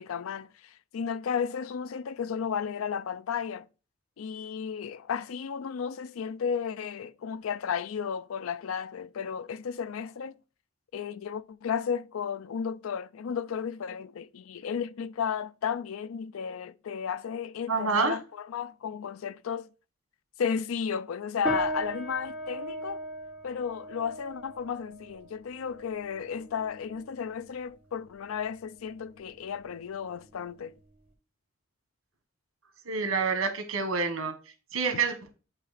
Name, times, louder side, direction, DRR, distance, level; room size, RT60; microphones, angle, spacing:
voice 1, 0.0-3.7 4.2-10.3 10.9-18.2 18.5-19.7 20.4-23.0 23.4-30.8, left 7 dB, 80° left, 0.4 m, -33 dB
voice 2, 17.7-18.1 32.8-34.3 34.7-35.3, right 4 dB, 85° right, 1.4 m, -27 dB
sound 1, 21.4-31.1, right 1 dB, 10° right, 1.9 m, -39 dB
8.0 x 2.8 x 4.1 m
head